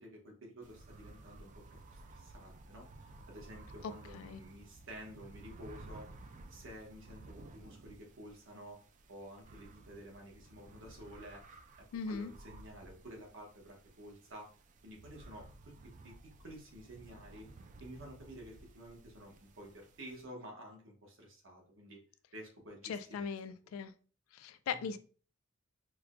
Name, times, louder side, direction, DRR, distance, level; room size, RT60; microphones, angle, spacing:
voice 1, 0.0-6.1 6.5-8.8 9.1-11.4 11.8-14.5 14.8-16.1 16.4-17.5 17.8-22.0 22.3-23.3 24.7-24.8, equal, 65° right, 0 dB, 1.1 m, -51 dB
sound 1, 0.6-20.2, right 2 dB, 40° right, 0.3 m, -55 dB
voice 2, 3.8-4.4 11.9-12.3 22.8-23.9 24.3-25.0, left 6 dB, 90° left, 12 dB, 0.3 m, -39 dB
4.6 x 2.2 x 2.4 m, 0.39 s
head